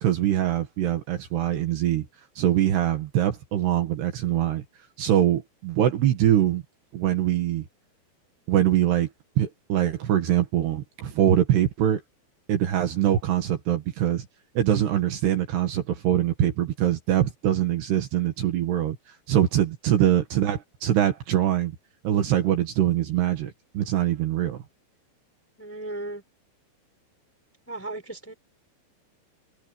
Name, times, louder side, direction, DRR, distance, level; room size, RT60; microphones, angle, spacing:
voice 1, 0.0-2.1 2.4-4.6 5.0-6.6 6.9-7.7 8.5-9.1 9.4-12.0 12.5-14.3 14.6-19.0 19.3-21.7 22.0-24.6, right 11 dB, 65° right, 3.6 m, -23 dB
voice 2, 25.6-26.2 27.7-28.3, right 2 dB, 5° left, 3.4 m, -36 dB
omnidirectional pair, 5.5 m